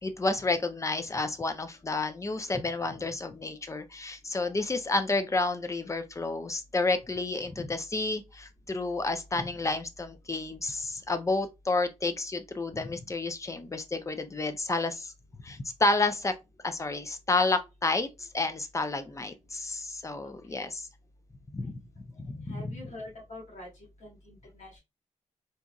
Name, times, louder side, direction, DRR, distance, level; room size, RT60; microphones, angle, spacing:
voice 1, 0.0-15.1 15.4-16.3 16.6-20.9 21.5-21.8 22.2-22.7, left 3 dB, 25° left, 0.5 m, -30 dB
voice 2, 22.5-23.7 24.0-24.8, left 1 dB, 75° left, 2.2 m, -45 dB
4.0 x 2.4 x 2.3 m
cardioid pair, 85°, 12 cm